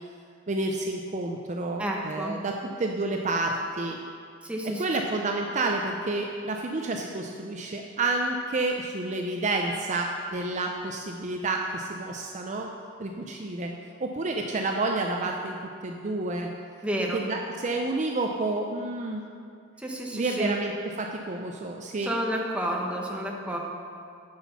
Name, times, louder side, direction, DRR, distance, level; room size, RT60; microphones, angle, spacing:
voice 1, 0.5-4.0 4.6-12.7 13.0-13.7 14.0-15.6 15.8-16.5 17.1-19.2 20.1-22.1, right 2 dB, 40° right, 2 dB, 0.5 m, -29 dB
voice 2, 1.8-2.4 4.4-4.8 16.8-17.2 19.8-20.5 22.0-23.6, equal, 5° right, -2 dB, 1.2 m, -30 dB
9.6 x 6.1 x 5.9 m, 2.3 s
head